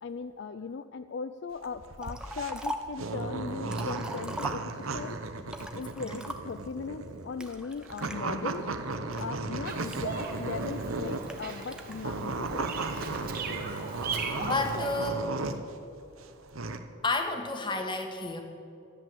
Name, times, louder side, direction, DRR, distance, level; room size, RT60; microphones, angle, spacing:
voice 1, 0.0-5.2 5.8-8.7 8.9-12.7, left 5 dB, 55° left, 10 dB, 0.4 m, -38 dB
sound 1, 1.5-11.4 11.9-15.7 16.2-16.8, right 3 dB, 75° right, 1.0 m, -35 dB
Liquid, 2.0-3.0 3.5-5.0 5.5-6.7 7.4-8.2 8.8-10.4 11.2-11.9, equal, 5° right, 0.7 m, -40 dB
Bird vocalization bird call bird song, 9.7-15.0, right 4 dB, 45° right, 1.8 m, -38 dB
voice 2, 14.4-15.3 17.0-18.4, left 2 dB, 20° left, 4 dB, 1.3 m, -31 dB
13.5 x 10.0 x 7.6 m, 2.7 s
head